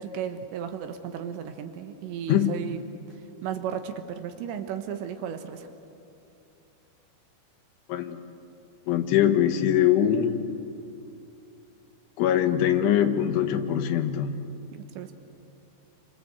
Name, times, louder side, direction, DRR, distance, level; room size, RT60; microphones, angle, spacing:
voice 1, 0.0-2.8 3.4-5.7 14.7-15.1, right 8 dB, 80° right, 7 dB, 3.4 m, -34 dB
voice 2, 8.9-10.6 12.2-14.4, left 10 dB, 90° left, 8 dB, 3.8 m, -23 dB
29.0 x 25.0 x 8.1 m, 2.7 s
omnidirectional pair, 5.3 m